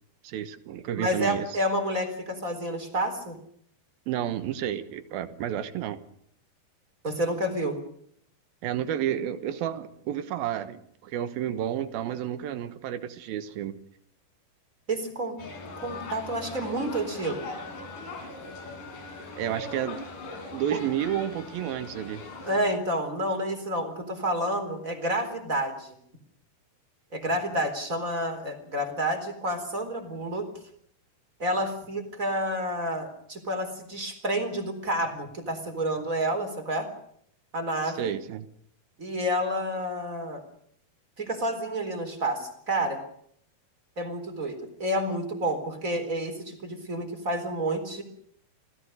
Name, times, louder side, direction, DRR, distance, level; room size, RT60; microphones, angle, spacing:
voice 1, 0.2-1.5 4.1-6.0 8.6-13.8 19.4-20.0 20.5-22.2 37.9-38.5, right 10 dB, 75° right, 12 dB, 2.9 m, -31 dB
voice 2, 0.9-3.4 7.0-7.8 14.9-15.4 15.8-17.5 20.7-20.8 22.5-26.0 27.1-30.5 31.4-36.9 37.5-38.1 39.0-40.4 41.2-43.0 44.0-48.0, right 1 dB, 20° right, 7 dB, 3.9 m, -29 dB
sound 1, 15.4-22.8, left 3 dB, 55° left, 5.4 m, -40 dB
29.0 x 18.0 x 6.6 m, 0.67 s
omnidirectional pair, 4.5 m